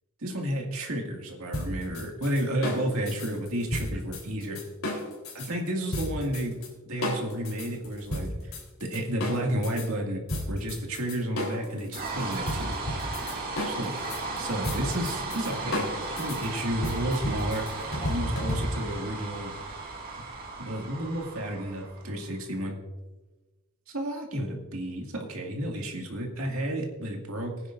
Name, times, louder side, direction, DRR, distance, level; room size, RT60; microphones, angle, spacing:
voice 1, 0.2-4.6 5.3-6.6 6.9-8.5 8.8-12.8 13.6-14.0 14.4-15.9 16.2-17.6 18.0-19.5 19.8-19.9 20.6-22.8 23.9-27.5, right 1 dB, 75° right, 1 dB, 2.2 m, -31 dB
sound 1, 1.5-5.5 5.9-6.7 7.0-9.9 10.3-19.0, left 1 dB, 70° left, 3.8 m, -33 dB
sound 2, 11.9-22.2, right 3 dB, 45° right, 2.2 m, -36 dB
20.5 x 9.9 x 2.6 m, 1.2 s
head